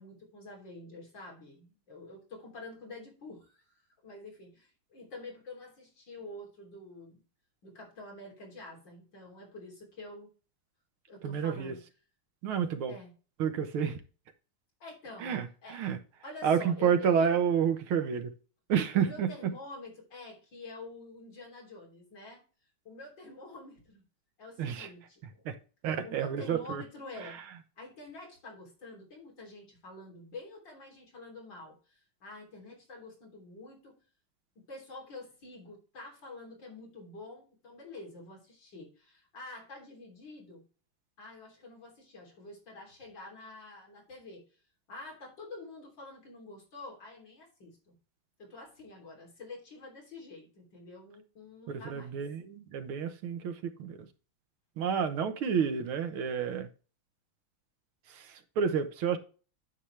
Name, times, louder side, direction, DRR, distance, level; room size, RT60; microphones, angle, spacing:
voice 1, 0.0-3.6 4.0-7.2 7.6-10.3 11.1-11.8 12.9-13.1 14.8-15.8 16.2-17.3 18.9-22.4 22.9-24.0 24.4-25.4 26.0-27.4 27.8-34.0 34.6-40.6 41.2-44.4 44.9-48.0 48.4-52.2, left 2 dB, 60° left, 4.0 m, -47 dB
voice 2, 11.2-11.7 12.4-13.0 13.4-14.0 15.2-16.0 16.4-18.3 18.7-19.5 24.6-24.9 25.5-25.6 25.8-26.8 27.2-27.3 51.7-54.0 54.8-56.7 58.1-59.2, right 7 dB, 80° right, 1.9 m, -30 dB
9.8 x 7.1 x 3.3 m
omnidirectional pair, 2.3 m